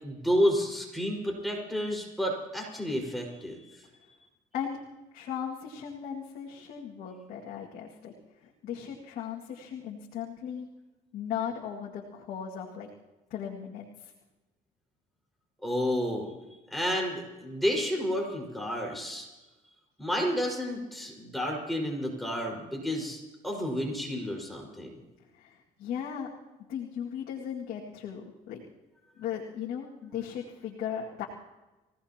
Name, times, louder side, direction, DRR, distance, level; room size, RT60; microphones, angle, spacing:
voice 1, 0.0-3.6 15.6-16.3 16.7-19.3 20.0-24.9, equal, ahead, -1 dB, 5.3 m, -30 dB
voice 2, 5.1-8.1 8.4-10.7 11.1-12.9 13.3-14.1 25.3-26.3 26.7-28.6 29.2-31.3, left 8 dB, 70° left, -3 dB, 2.2 m, -37 dB
26.5 x 17.0 x 3.0 m, 1.1 s
cardioid pair, 100°, 15 cm